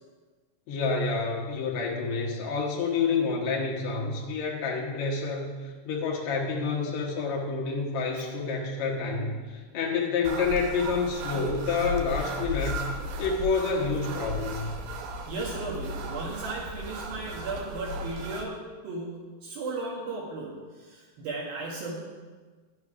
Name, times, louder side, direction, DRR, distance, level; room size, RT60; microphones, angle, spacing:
voice 1, 0.7-12.8 13.2-14.7, left 4 dB, 85° left, -2 dB, 1.6 m, -28 dB
sound 1, 10.2-18.4, equal, 90° right, 2.0 m, -35 dB
voice 2, 15.3-18.6 18.8-22.0, right 3 dB, 65° right, -3 dB, 2.7 m, -35 dB
11.5 x 7.9 x 4.9 m, 1.4 s
omnidirectional pair, 5.4 m